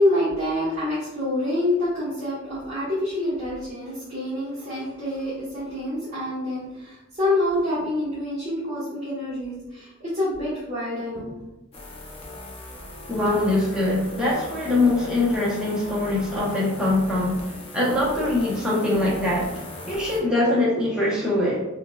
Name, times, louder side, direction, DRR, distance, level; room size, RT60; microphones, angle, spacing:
voice 1, 0.0-11.4, left 1 dB, 30° right, -11 dB, 1.0 m, -26 dB
sound 1, 11.7-20.2, left 1 dB, 25° left, 0.5 m, -40 dB
voice 2, 13.1-21.6, left 2 dB, 5° right, -7 dB, 0.7 m, -23 dB
4.4 x 2.2 x 2.3 m, 0.95 s
head